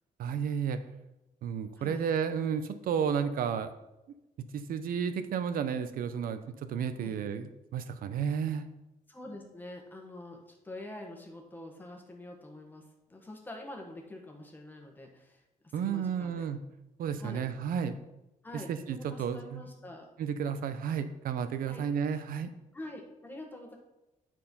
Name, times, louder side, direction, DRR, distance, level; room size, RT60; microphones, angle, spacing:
voice 1, 0.2-0.8 1.4-3.7 4.4-8.6 15.7-16.6 17.0-18.0 18.7-19.6 20.2-22.5, right 7 dB, 90° right, 10 dB, 0.7 m, -32 dB
voice 2, 9.1-16.4 17.2-17.4 18.4-20.1 21.7-21.8 22.7-23.8, left 1 dB, 15° left, 1 dB, 1.5 m, -46 dB
9.8 x 4.6 x 5.4 m, 0.96 s
wide cardioid pair, 165°, 14 cm